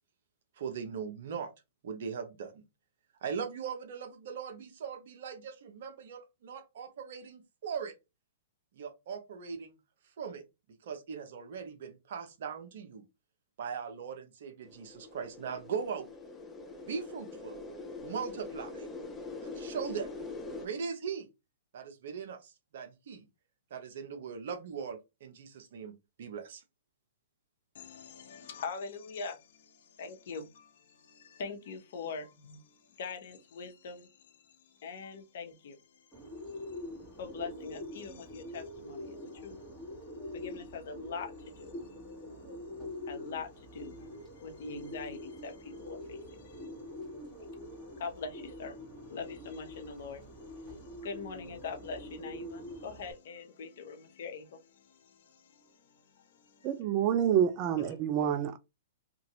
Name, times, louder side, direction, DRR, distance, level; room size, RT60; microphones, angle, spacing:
voice 1, 0.6-1.5 1.8-2.6 3.2-7.9 8.8-9.7 10.2-10.4 10.8-13.0 13.6-16.1 16.9-17.6 18.0-18.9 19.4-20.1 20.5-21.3 21.7-23.3 23.7-25.9 26.2-26.6, right 6 dB, 60° right, 0.9 m, -39 dB
sound 1, 14.6-20.7, left 3 dB, 15° left, 0.6 m, -43 dB
voice 2, 27.7-36.1 36.4-36.8 37.2-39.7 40.3-41.8 43.1-46.8 47.5-56.7 57.8-58.0, left 5 dB, 60° left, 0.9 m, -44 dB
Bird, 36.1-53.1, left 1 dB, 5° right, 1.3 m, -45 dB
voice 3, 56.6-58.6, right 9 dB, 40° right, 0.4 m, -28 dB
2.8 x 2.5 x 2.9 m
hypercardioid pair, 125°, 0 cm